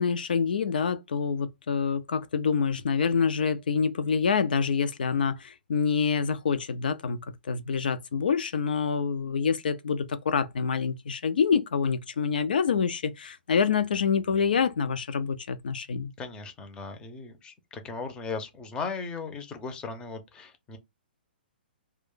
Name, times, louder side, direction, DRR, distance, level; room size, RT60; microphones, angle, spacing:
voice 1, 0.0-16.1, left 6 dB, 60° left, 0.4 m, -26 dB
voice 2, 16.2-20.8, left 4 dB, 15° left, 0.6 m, -37 dB
2.4 x 2.2 x 3.7 m
figure-of-eight pair, 115°, 6 cm